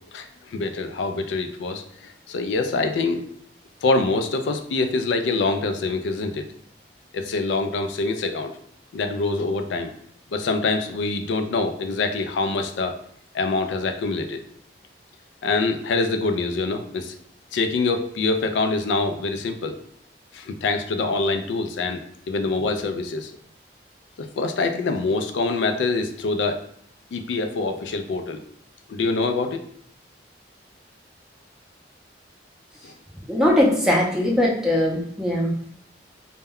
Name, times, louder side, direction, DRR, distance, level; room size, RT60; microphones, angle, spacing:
voice 1, 0.1-3.2 3.8-6.4 7.1-8.5 8.9-9.9 10.3-13.0 13.3-14.4 15.4-17.1 17.5-19.8 20.3-22.0 22.3-23.3 24.2-26.6 27.1-28.4 28.9-29.6 32.8-32.9, left 3 dB, 80° left, 6 dB, 0.3 m, -25 dB
voice 2, 33.3-35.5, left 1 dB, 5° right, -4 dB, 0.5 m, -20 dB
2.1 x 2.1 x 3.4 m, 0.67 s
head